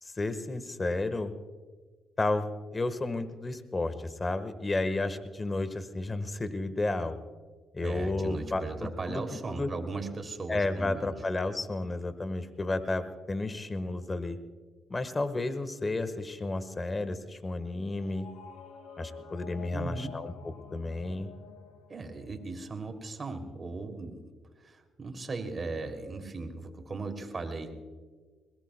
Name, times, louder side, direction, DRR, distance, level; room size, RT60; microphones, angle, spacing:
voice 1, 0.0-1.3 2.2-7.2 7.7-9.2 9.5-9.7 10.5-14.4 14.9-18.3 19.0-20.3 20.7-21.3, left 2 dB, 30° left, 11 dB, 1.4 m, -32 dB
voice 2, 7.8-11.1 19.7-20.2 21.9-24.3 24.6-27.8, right 3 dB, 40° right, 5 dB, 2.9 m, -37 dB
sound 1, 18.0-22.9, left 7 dB, 80° left, 1.9 m, -49 dB
22.0 x 21.0 x 2.3 m, 1.4 s
supercardioid pair, 60°, 0 cm